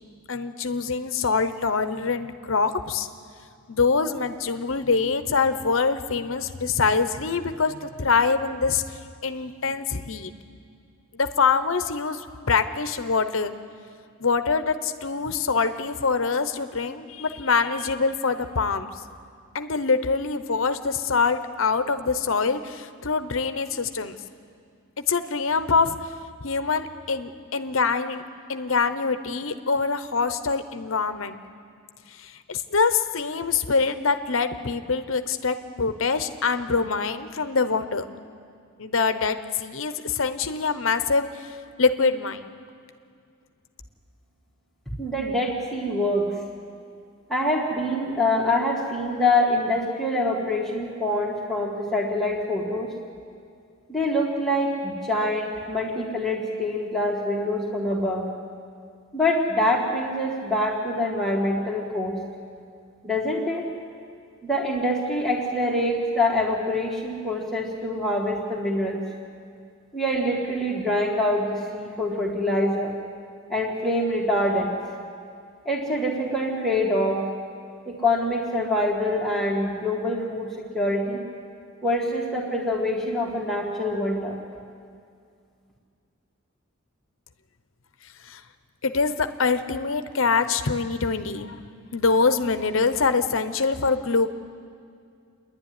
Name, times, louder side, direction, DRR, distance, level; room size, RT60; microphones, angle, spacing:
voice 1, 0.3-3.1 3.7-10.3 11.1-13.5 14.2-18.9 19.5-24.2 25.1-26.0 26.4-28.2 28.5-31.4 32.2-38.0 38.8-42.4 88.2-88.4 88.8-91.6 91.9-94.3, left 4 dB, 65° left, 9 dB, 0.9 m, -24 dB
voice 2, 45.0-46.3 47.3-52.9 53.9-58.3 59.1-62.2 63.0-63.7 64.4-69.0 69.9-72.9 73.5-74.8 75.7-77.2 77.9-81.2 81.8-84.4, left 1 dB, ahead, -6 dB, 2.1 m, -25 dB
28.0 x 11.0 x 9.7 m, 2.3 s
head